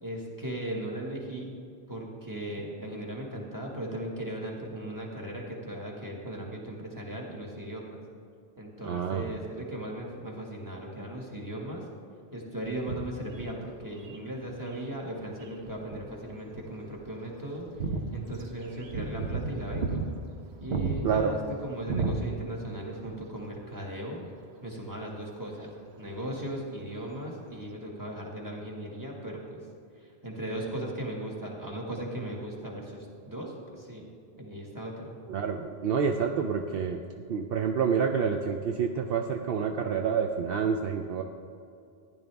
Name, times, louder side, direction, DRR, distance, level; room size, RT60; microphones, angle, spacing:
voice 1, 0.0-1.5 1.9-8.0 8.6-11.8 12.3-17.6 18.1-20.0 20.6-24.2 24.6-25.7 26.0-29.6 30.0-34.1 34.4-35.2, right 1 dB, 20° right, -2 dB, 1.7 m, -37 dB
voice 2, 8.8-9.3 21.0-21.3 35.3-37.0 37.3-41.2, right 6 dB, 70° right, 4 dB, 0.8 m, -28 dB
sound 1, 12.6-14.8 15.4-16.2 16.5-16.6 16.9-17.0 17.5-22.8 23.0-23.2 24.7-24.8, right 3 dB, 85° right, 1.2 m, -33 dB
14.5 x 10.5 x 3.5 m, 2.4 s
omnidirectional pair, 1.0 m